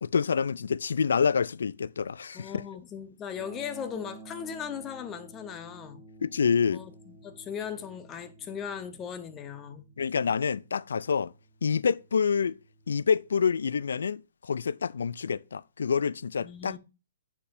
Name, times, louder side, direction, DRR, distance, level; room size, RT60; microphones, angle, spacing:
voice 1, 0.0-2.6 6.2-6.8 10.0-11.3 11.6-12.6 12.9-16.8, left 6 dB, 75° left, 0.4 m, -27 dB
voice 2, 2.3-6.0 6.7-9.8 16.4-16.8, left 8 dB, 20° left, 1.0 m, -38 dB
sound 1, 3.3-13.4, right 2 dB, ahead, 2.0 m, -52 dB
7.4 x 6.8 x 2.6 m
hypercardioid pair, 135°, 0 cm